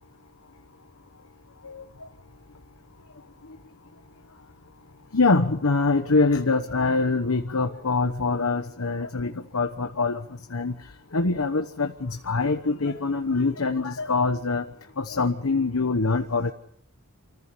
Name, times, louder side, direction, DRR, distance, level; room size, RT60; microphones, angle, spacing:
voice 1, 5.1-10.2 10.5-10.7 11.1-14.7 15.0-16.5, left 3 dB, 75° left, 7 dB, 1.1 m, -24 dB
27.5 x 15.0 x 7.0 m, 0.71 s
head